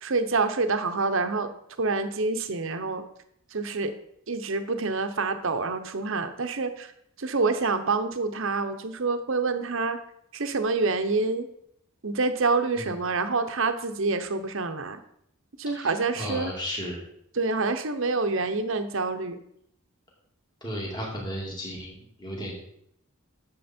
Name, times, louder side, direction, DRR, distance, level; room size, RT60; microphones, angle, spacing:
voice 1, 0.0-1.5 1.8-3.0 3.5-3.9 4.3-6.9 7.2-10.0 10.3-11.5 12.0-15.0 15.6-16.5 17.3-19.4, right 3 dB, 60° right, 9 dB, 0.9 m, -27 dB
voice 2, 15.7-17.0 20.6-22.5, equal, 20° left, -3 dB, 2.3 m, -34 dB
10.5 x 7.2 x 4.4 m, 0.73 s
head